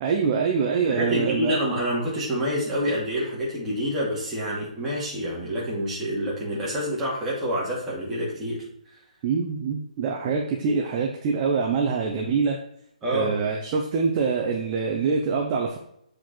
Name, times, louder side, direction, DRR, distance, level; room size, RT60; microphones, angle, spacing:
voice 1, 0.0-1.6 9.2-12.6 13.1-15.8, right 5 dB, 25° right, 1 dB, 0.8 m, -25 dB
voice 2, 0.9-8.6 13.0-13.3, equal, 10° right, -7 dB, 2.4 m, -27 dB
7.9 x 5.0 x 4.4 m, 0.73 s
hypercardioid pair, 165°, 4 cm